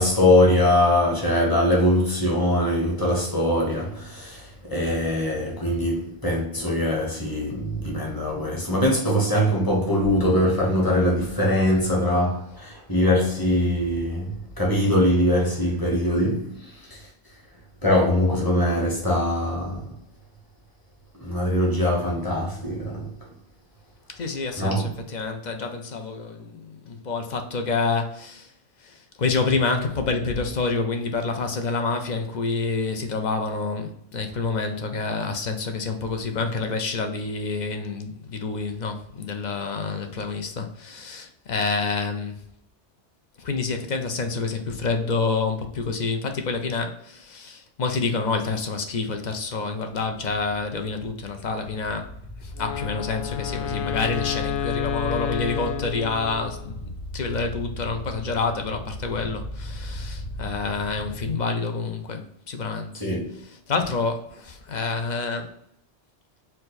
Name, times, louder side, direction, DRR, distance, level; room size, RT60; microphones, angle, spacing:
voice 1, 0.0-14.3 14.6-16.5 17.8-19.8 21.2-23.1 24.6-24.9 63.0-63.3, left 1 dB, 20° left, 1.2 m, -22 dB
voice 2, 24.1-28.5 28.8-42.4 43.4-52.1 52.4-56.8 57.1-63.0 63.3-65.5, left 4 dB, 50° left, 0.6 m, -28 dB
sound 1, 48.9-61.3, left 1 dB, 75° left, 2.0 m, -37 dB
Wind instrument woodwind instrument, 52.6-56.7, left 10 dB, 90° left, 0.9 m, -30 dB
4.4 x 2.6 x 4.0 m
omnidirectional pair, 1.1 m